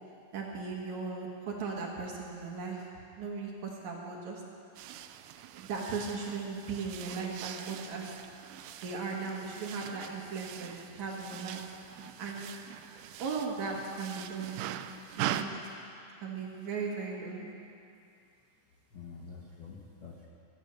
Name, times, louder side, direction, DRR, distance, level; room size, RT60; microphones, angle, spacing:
voice 1, 0.3-2.9 3.1-4.4 5.5-8.1 8.8-11.6 12.2-12.5 13.2-14.7 15.2-15.6 16.2-17.5, right 4 dB, 60° right, -1 dB, 2.3 m, -37 dB
sound 1, 4.8-15.4, right 12 dB, 85° right, 2.0 m, -42 dB
voice 2, 18.9-20.3, left 6 dB, 75° left, -3 dB, 1.0 m, -48 dB
15.0 x 13.0 x 6.7 m, 2.5 s
omnidirectional pair, 4.5 m